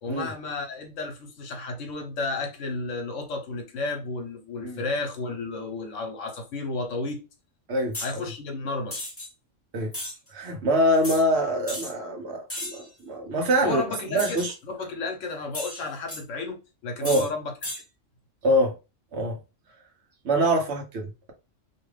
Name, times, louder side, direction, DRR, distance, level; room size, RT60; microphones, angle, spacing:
voice 1, 0.0-7.2 8.0-9.0 13.6-14.4 14.7-16.6 16.8-17.5, left 3 dB, 70° left, 1.1 m, -32 dB
sound 1, 7.9-8.2 8.9-9.3 9.9-10.2 11.0-11.2 11.7-11.9 12.5-12.9 14.2-14.5 15.5-16.2 17.0-17.3 17.6-17.8, left 1 dB, 10° left, 1.0 m, -34 dB
voice 2, 10.3-13.8 14.1-14.5 17.0-17.2 18.4-18.7 19.1-19.4 20.2-21.3, equal, 60° right, 1.0 m, -24 dB
2.7 x 2.4 x 3.2 m
omnidirectional pair, 1.3 m